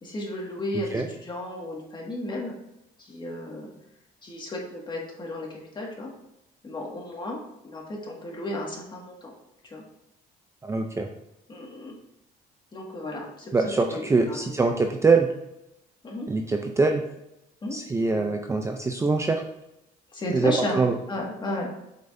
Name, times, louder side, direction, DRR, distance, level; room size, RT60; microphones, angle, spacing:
voice 1, 0.0-2.5 3.0-3.7 4.2-5.5 5.7-6.1 6.6-7.4 7.6-9.3 9.6-9.8 11.5-12.0 12.7-13.5 13.9-14.5 16.0-16.3 17.6-17.8 20.1-20.8 21.1-21.7, left 1 dB, 25° left, -2 dB, 1.9 m, -33 dB
voice 2, 0.7-1.1 10.6-11.1 13.5-15.3 16.3-17.0 17.7-19.4 20.3-20.9, right 3 dB, 15° right, 4 dB, 0.5 m, -23 dB
7.7 x 5.3 x 2.7 m, 0.86 s
cardioid pair, 110°, 17 cm